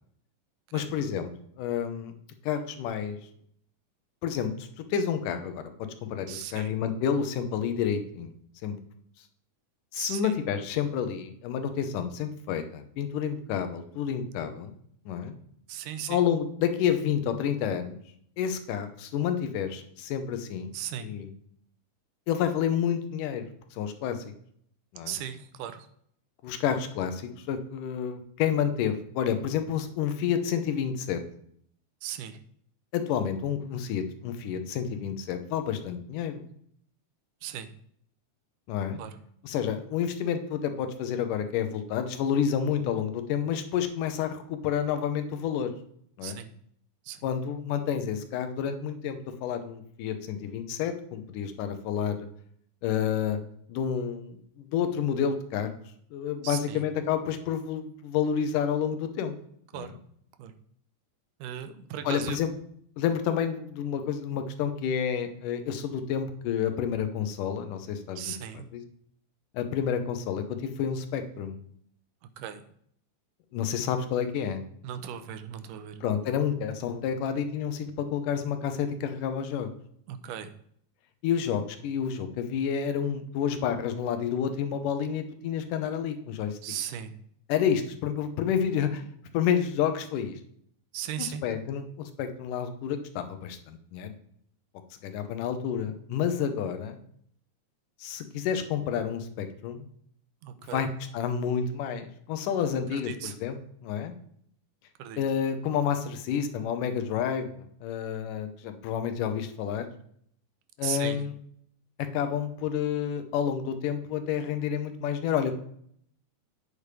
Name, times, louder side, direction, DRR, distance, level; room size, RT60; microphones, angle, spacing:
voice 1, 0.7-1.3 1.6-2.1 2.4-3.2 4.2-4.5 4.8-5.7 6.0-8.3 8.6-8.8 9.9-14.7 15.1-15.3 16.1-18.0 18.4-20.7 21.0-21.3 22.3-24.2 24.9-25.1 26.4-31.2 32.9-36.5 38.7-39.0 39.4-45.7 46.2-46.4 47.2-52.3 52.8-53.4 53.7-55.7 56.1-59.4 59.7-59.9 62.0-62.5 63.0-68.8 69.5-71.6 73.5-74.6 76.0-79.7 81.2-86.6 87.5-89.0 89.3-90.4 91.4-94.1 95.0-97.0 98.0-99.9 100.7-100.9 101.1-104.2 105.2-109.9 110.8-111.3 112.0-115.6, left 8 dB, 85° left, 8 dB, 2.4 m, -29 dB
voice 2, 6.3-6.8 10.0-10.3 15.7-16.2 20.7-21.1 25.1-25.9 32.0-32.4 37.4-37.7 39.0-39.2 46.2-46.5 47.1-47.3 56.4-56.8 59.7-60.0 60.4-60.5 61.4-62.4 68.2-68.7 72.4-72.7 74.8-76.0 80.1-80.6 86.6-87.2 90.9-91.4 100.4-100.9 102.9-103.4 105.0-105.2 110.8-111.2, right 9 dB, 90° right, 10 dB, 2.3 m, -37 dB
8.8 x 6.7 x 3.3 m, 0.65 s
omnidirectional pair, 3.7 m